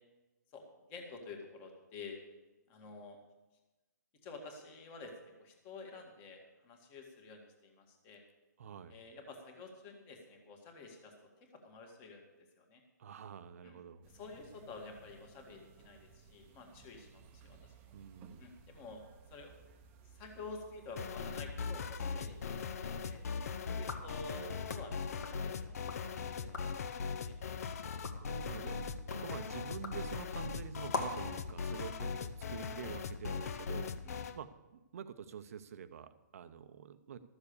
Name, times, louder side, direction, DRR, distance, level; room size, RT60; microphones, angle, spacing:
voice 1, 0.5-2.2 2.7-3.2 4.2-5.1 5.4-8.2 8.9-11.1 11.5-12.2 12.6-12.8 13.6-13.8 14.1-17.7 18.4-19.0 19.3-19.5 20.1-22.6 23.0-23.2 23.7-27.3 28.6-28.8 31.9-32.0 34.0-34.2, left 3 dB, 20° left, 3 dB, 1.8 m, -50 dB
voice 2, 8.6-9.0 13.0-14.0 17.9-18.5 28.0-34.0 34.3-37.2, right 7 dB, 55° right, 12 dB, 0.7 m, -47 dB
sound 1, 14.0-24.6, right 5 dB, 20° right, 0.8 m, -60 dB
sound 2, 21.0-34.4, left 5 dB, 60° left, 0.7 m, -40 dB
sound 3, 23.7-26.1 26.4-26.9 27.3-31.3, left 3 dB, 80° left, 2.0 m, -45 dB
13.0 x 7.1 x 6.7 m, 1.1 s
hypercardioid pair, 160°, 10 cm